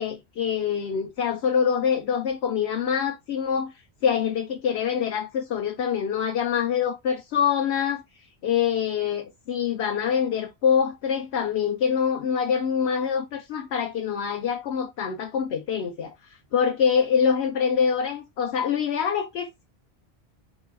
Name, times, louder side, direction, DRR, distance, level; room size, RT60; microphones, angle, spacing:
voice 1, 0.0-3.7 4.0-8.0 8.4-19.6, left 7 dB, 85° left, 0.9 m, -25 dB
4.1 x 2.2 x 4.6 m
omnidirectional pair, 1.1 m